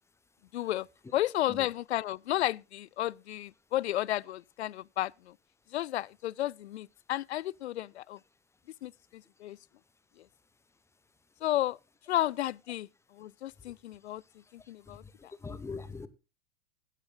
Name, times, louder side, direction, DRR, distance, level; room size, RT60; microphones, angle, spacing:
voice 1, 0.5-0.9 1.1-5.3 5.7-8.2 8.8-9.6 11.4-11.8 12.1-12.9 13.1-14.2 14.5-15.3, left 14 dB, 70° left, 0.5 m, -32 dB
voice 2, 14.9-16.1, left 4 dB, 10° left, 0.9 m, -42 dB
16.5 x 10.5 x 2.3 m
figure-of-eight pair, 95°, 35 cm